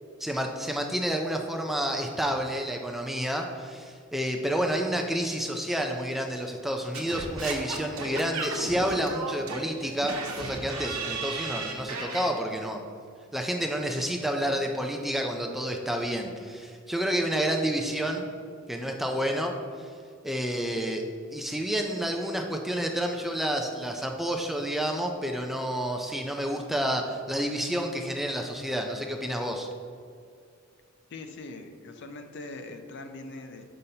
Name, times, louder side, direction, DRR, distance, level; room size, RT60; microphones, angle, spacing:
voice 1, 0.2-12.8 13.3-18.3 18.7-19.9 20.2-21.0 21.3-29.7, equal, ahead, 2 dB, 0.4 m, -29 dB
Singing / Scratching (performance technique), 6.9-12.3, right 3 dB, 85° right, 0.9 m, -34 dB
voice 2, 31.1-33.6, left 2 dB, 55° left, 6 dB, 0.5 m, -41 dB
6.6 x 5.5 x 2.8 m, 2.3 s
head